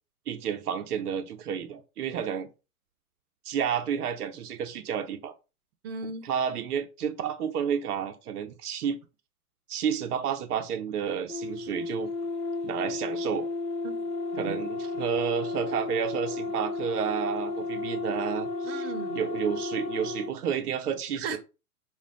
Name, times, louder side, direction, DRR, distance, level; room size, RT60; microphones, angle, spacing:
voice 1, 0.3-2.5 3.4-5.3 6.2-9.0 9.7-12.1 12.6-13.5 14.4-18.8 19.1-21.4, right 8 dB, 80° right, 0.7 m, -31 dB
voice 2, 5.8-6.3 13.8-14.6 18.6-19.3 21.2-21.4, right 4 dB, 40° right, 0.7 m, -37 dB
sound 1, 11.3-20.4, left 3 dB, 85° left, 0.8 m, -33 dB
2.5 x 2.2 x 3.7 m
hypercardioid pair, 125°, 45 cm